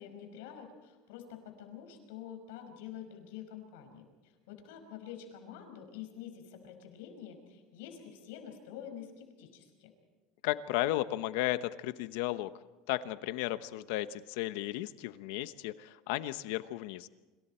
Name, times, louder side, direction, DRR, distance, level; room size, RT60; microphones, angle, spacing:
voice 1, 0.0-4.0 4.5-9.9, left 9 dB, 85° left, 5 dB, 5.6 m, -47 dB
voice 2, 10.4-12.5 12.9-17.1, left 15 dB, 65° left, 13 dB, 1.0 m, -34 dB
28.0 x 26.0 x 4.5 m, 1.2 s
cardioid pair, 170°, 0 cm